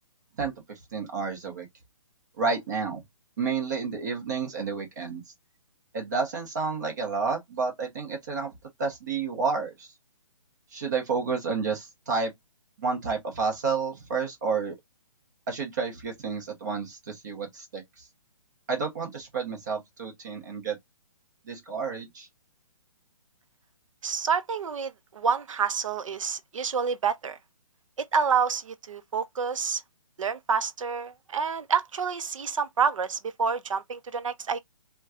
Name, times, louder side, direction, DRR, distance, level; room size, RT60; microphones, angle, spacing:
voice 1, 0.4-1.7 2.4-3.0 3.4-5.2 5.9-8.5 8.8-9.9 10.7-12.3 12.8-14.7 15.5-18.1 18.7-20.8 21.5-22.3, right 5 dB, 30° right, 0.9 m, -30 dB
voice 2, 24.0-27.4 28.0-29.8 30.2-34.6, right 6 dB, 65° right, 0.7 m, -28 dB
4.1 x 2.3 x 2.3 m
hypercardioid pair, 175°, 18 cm